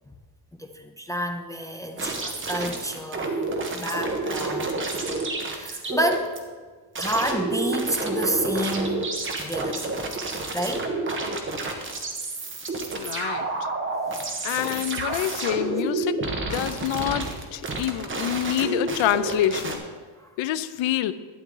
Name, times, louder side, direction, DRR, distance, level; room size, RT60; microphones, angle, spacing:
voice 1, 0.6-4.8 5.5-6.4 7.0-9.0 9.4-9.9 10.5-10.9 14.1-15.2 16.0-16.1 20.2-20.3, right 1 dB, 5° left, 5 dB, 0.4 m, -30 dB
sound 1, 2.0-6.4 6.9-19.8, right 2 dB, 25° right, 1.2 m, -29 dB
voice 2, 13.0-13.5 14.4-16.2 16.5-17.2 17.5-19.8 20.4-21.1, left 12 dB, 70° left, 14 dB, 0.7 m, -26 dB
12.0 x 9.4 x 3.9 m, 1.4 s
cardioid pair, 160°, 49 cm